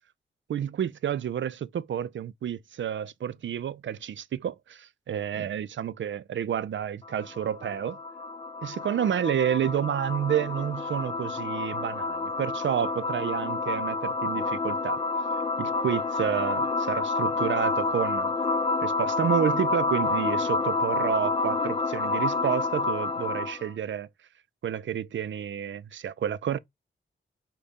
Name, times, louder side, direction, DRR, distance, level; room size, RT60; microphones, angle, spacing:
voice 1, 0.5-8.0 8.6-15.0 15.6-18.3 18.8-24.1 24.6-26.6, right 9 dB, 65° right, 0.4 m, -30 dB
sound 1, 7.0-23.7, left 3 dB, 25° left, 0.4 m, -29 dB
5.0 x 2.3 x 4.1 m
cardioid pair, 45°, 21 cm